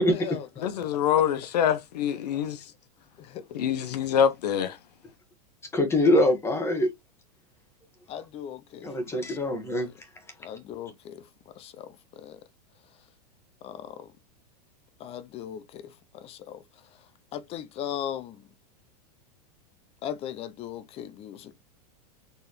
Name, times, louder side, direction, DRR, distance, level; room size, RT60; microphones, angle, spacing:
voice 1, 0.0-0.9 3.2-3.5 8.1-9.9 10.4-11.3 11.6-12.4 13.6-14.1 15.0-16.6 17.3-18.4 20.0-21.5, left 10 dB, 30° left, 0.6 m, -39 dB
voice 2, 0.6-2.6 3.5-4.8, left 9 dB, 75° left, 0.8 m, -25 dB
voice 3, 5.7-6.9 8.8-9.9, left 1 dB, 10° left, 1.3 m, -23 dB
4.6 x 3.3 x 3.1 m
supercardioid pair, 135°, 21 cm